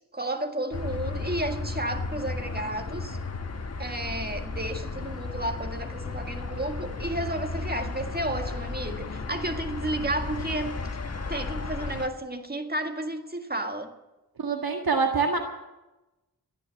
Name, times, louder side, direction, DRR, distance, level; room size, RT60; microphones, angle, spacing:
voice 1, 0.1-3.2 3.8-10.8 11.3-13.9, right 1 dB, 25° right, 1.7 m, -32 dB
sound 1, 0.7-12.1, left 3 dB, 45° left, 1.3 m, -34 dB
voice 2, 14.4-15.4, right 4 dB, 75° right, 1.8 m, -25 dB
17.0 x 11.5 x 7.0 m
cardioid pair, 50°, 36 cm